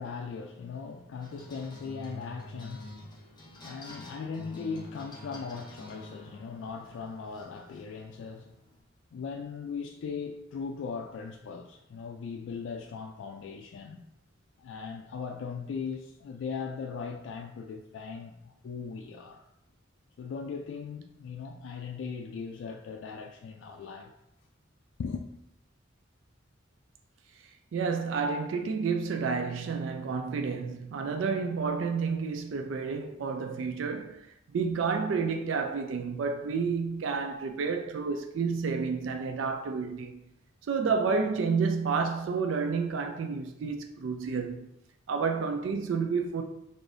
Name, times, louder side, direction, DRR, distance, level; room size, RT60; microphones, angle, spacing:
voice 1, 0.0-8.5 9.1-14.0 14.6-19.5 20.2-24.1 25.0-25.2, left 5 dB, 80° left, 0.3 m, -39 dB
sound 1, 1.2-8.8, left 1 dB, 25° left, 0.7 m, -48 dB
voice 2, 27.7-40.3 40.7-44.7 45.1-46.4, right 5 dB, 85° right, 0.4 m, -30 dB
4.8 x 2.6 x 2.5 m
head